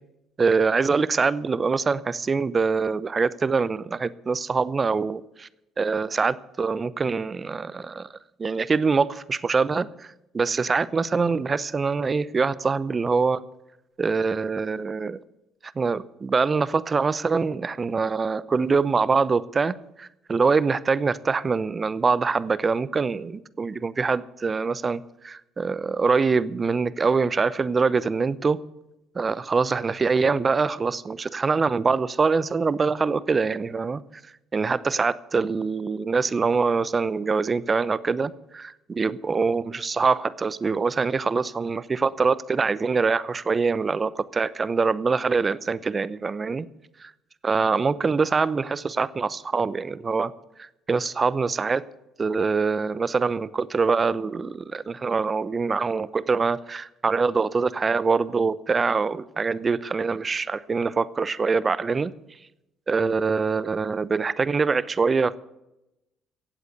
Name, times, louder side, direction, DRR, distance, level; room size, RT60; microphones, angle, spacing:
voice 1, 0.4-5.5 5.8-8.1 8.4-10.1 10.3-13.4 14.0-15.2 15.8-28.6 29.1-34.0 34.5-46.7 47.0-47.1 47.4-50.3 50.6-51.8 52.2-62.1 62.9-65.4, right 4 dB, 35° right, 18 dB, 0.7 m, -24 dB
16.0 x 8.1 x 8.1 m, 0.91 s
supercardioid pair, 70°, 0 cm